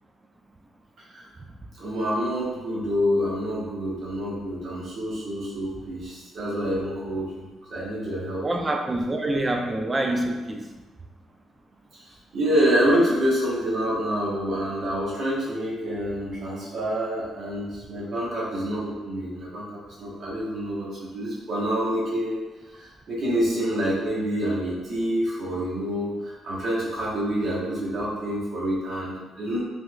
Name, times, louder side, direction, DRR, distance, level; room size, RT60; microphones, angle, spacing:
voice 1, 1.7-7.4 7.7-8.5 11.9-12.0 12.3-22.4 22.8-29.6, equal, 55° right, -6 dB, 1.1 m, -27 dB
voice 2, 8.4-10.7, right 1 dB, 25° right, 3 dB, 0.4 m, -26 dB
3.3 x 3.0 x 2.3 m, 1.2 s
cardioid pair, 90°, 0 cm